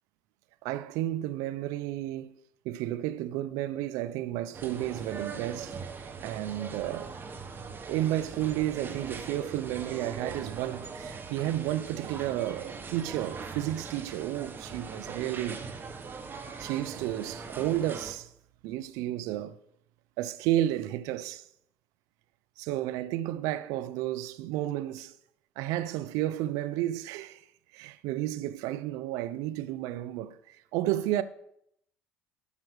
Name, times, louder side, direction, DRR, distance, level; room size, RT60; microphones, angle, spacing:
voice 1, 0.6-2.4 2.6-7.2 7.9-15.6 16.6-18.3 18.6-19.6 20.2-21.5 22.6-25.2 25.6-27.4 27.7-31.2, right 13 dB, 75° right, 0.6 m, -32 dB
sound 1, 4.5-18.1, right 5 dB, 35° right, 1.5 m, -41 dB
12.5 x 5.5 x 6.4 m
hypercardioid pair, 70°, 6 cm